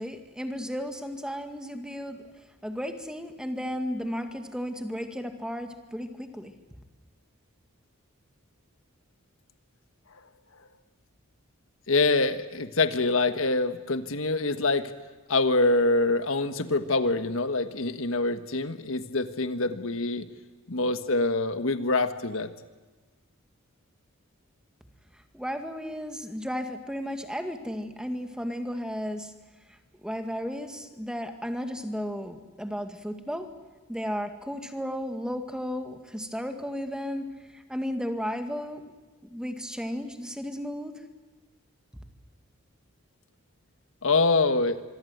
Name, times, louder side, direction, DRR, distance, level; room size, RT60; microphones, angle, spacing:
voice 1, 0.0-2.2 2.6-6.5 25.3-29.3 29.7-33.5 33.9-38.9 39.3-41.0, equal, 5° right, 6 dB, 2.0 m, -34 dB
voice 2, 11.9-14.9 15.3-20.3 20.7-22.5 44.0-44.8, left 3 dB, 65° left, 10 dB, 1.4 m, -25 dB
26.0 x 23.5 x 8.0 m, 1.3 s
head